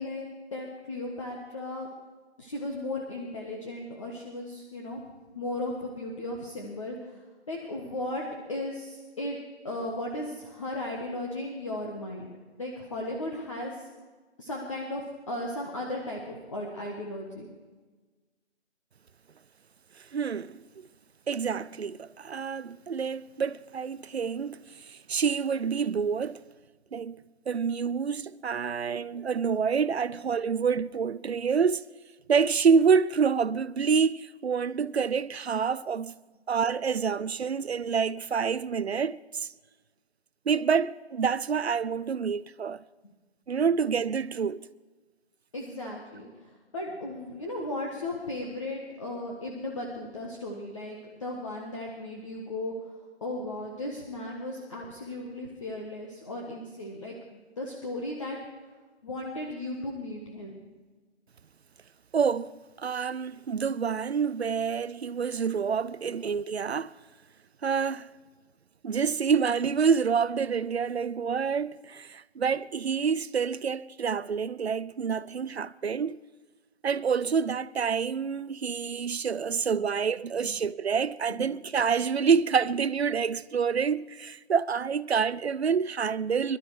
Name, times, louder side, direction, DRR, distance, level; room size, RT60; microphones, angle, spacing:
voice 1, 0.0-1.9 2.4-5.0 5.3-8.2 8.5-9.4 9.6-12.3 12.6-13.9 14.4-17.5 45.5-58.4 59.0-60.6 79.8-79.9 80.4-80.5, left 1 dB, 30° left, 1.6 m, -36 dB
voice 2, 20.1-20.9 21.3-26.4 26.9-27.2 27.5-31.8 32.3-36.1 36.5-39.5 40.5-42.8 43.5-44.7 62.1-67.0 67.6-68.1 68.8-76.2 76.8-86.6, right 6 dB, 65° right, 0.6 m, -27 dB
22.5 x 12.0 x 4.9 m
figure-of-eight pair, 165°, 34 cm